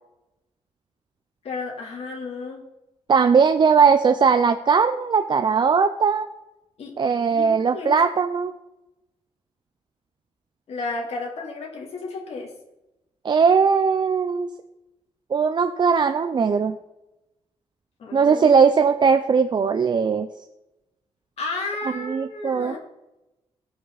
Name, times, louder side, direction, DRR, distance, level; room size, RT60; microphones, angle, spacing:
voice 1, 1.4-2.6 6.8-7.0 7.3-8.0 10.7-12.5 18.0-18.5 21.4-22.8, left 3 dB, 70° left, -1 dB, 3.5 m, -32 dB
voice 2, 3.1-6.3 7.0-8.5 13.2-14.5 15.3-16.8 18.1-20.3 22.0-22.7, right 5 dB, 45° right, 8 dB, 0.7 m, -19 dB
18.0 x 6.1 x 4.1 m, 0.92 s
cardioid pair, 115°, 11 cm